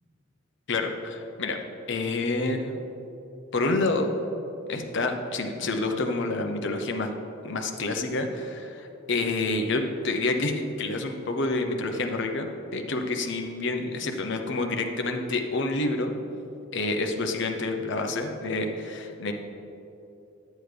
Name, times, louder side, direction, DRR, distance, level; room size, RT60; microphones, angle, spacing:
voice 1, 0.7-1.6 1.9-2.8 3.5-4.1 4.7-7.1 7.4-16.1 16.7-19.3, left 2 dB, 60° left, 4 dB, 0.8 m, -28 dB
11.0 x 9.3 x 3.4 m, 2.9 s
head